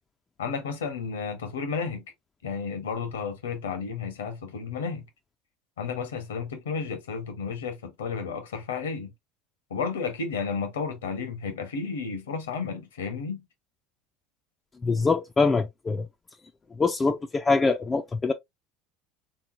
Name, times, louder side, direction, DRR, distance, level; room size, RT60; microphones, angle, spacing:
voice 1, 0.4-2.1 2.4-5.0 5.8-9.1 9.7-13.4, left 5 dB, 75° left, 0.8 m, -32 dB
voice 2, 14.8-16.1 16.8-18.3, left 4 dB, 20° left, 0.4 m, -24 dB
3.5 x 3.0 x 2.5 m
figure-of-eight pair, 70°, 0 cm